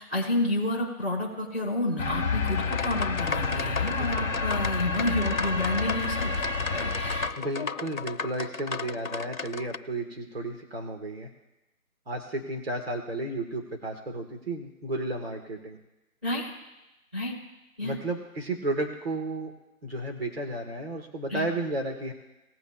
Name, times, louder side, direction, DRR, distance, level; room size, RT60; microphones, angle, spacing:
voice 1, 0.0-6.3 6.7-7.3 7.6-7.7 16.2-16.5 17.1-17.3 17.8-18.0 21.3-21.5, left 1 dB, 10° right, -8 dB, 4.3 m, -30 dB
sound 1, 2.0-7.3, left 4 dB, 10° left, 1.3 m, -29 dB
sound 2, 2.4-9.8, left 5 dB, 65° left, 1.0 m, -36 dB
voice 2, 7.4-11.3 12.1-15.8 17.8-19.5 19.8-22.1, right 2 dB, 45° right, 2 dB, 1.8 m, -33 dB
19.5 x 8.0 x 2.4 m, 1.0 s
figure-of-eight pair, 170°, 44 cm